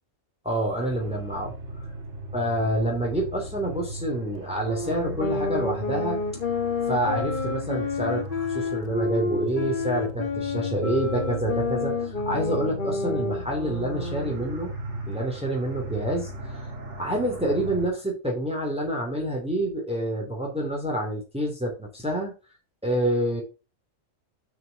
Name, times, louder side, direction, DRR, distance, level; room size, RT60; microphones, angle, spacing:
voice 1, 0.4-1.5 2.3-6.2 6.9-14.7 15.1-16.7 17.0-22.3 22.8-23.4, right 1 dB, 5° right, -1 dB, 2.7 m, -28 dB
sound 1, 0.9-17.9, right 1 dB, 65° right, 2.4 m, -37 dB
sound 2, 4.6-14.6, left 4 dB, 45° left, 1.1 m, -29 dB
6.9 x 5.7 x 5.7 m, 0.30 s
omnidirectional pair, 1.3 m